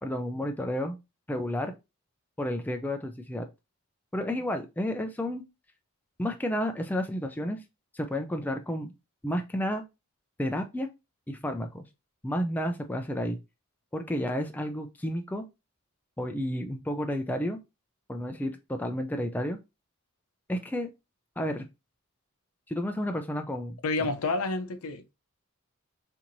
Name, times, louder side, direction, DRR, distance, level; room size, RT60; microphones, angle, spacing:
voice 1, 0.0-1.0 1.3-1.7 2.4-3.5 4.1-5.4 6.2-7.6 7.9-8.9 9.2-9.8 10.4-10.9 11.3-11.9 12.2-13.4 13.9-15.5 16.2-17.6 18.1-19.6 20.5-20.9 21.4-21.7 22.7-23.8, equal, 10° left, 0.3 m, -31 dB
voice 2, 23.8-25.1, left 3 dB, 75° left, 0.6 m, -29 dB
4.3 x 2.7 x 2.6 m
head